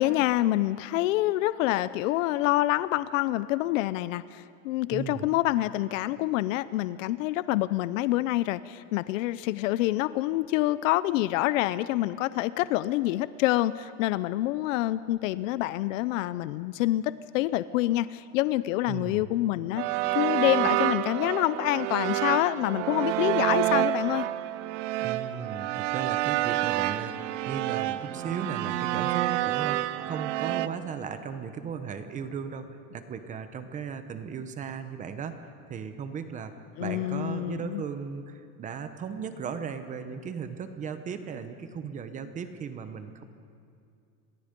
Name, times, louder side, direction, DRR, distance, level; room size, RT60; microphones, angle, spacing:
voice 1, 0.0-19.8 20.1-24.3 36.8-37.8, left 16 dB, 85° left, 16 dB, 0.7 m, -27 dB
voice 2, 4.9-5.3 18.9-19.3 25.0-36.5 36.8-43.2, right 6 dB, 20° right, 9 dB, 1.0 m, -36 dB
sound 1, 19.8-30.7, right 15 dB, 70° right, 0.9 m, -28 dB
30.0 x 22.5 x 5.3 m, 2.4 s
cardioid pair, 175°, 37 cm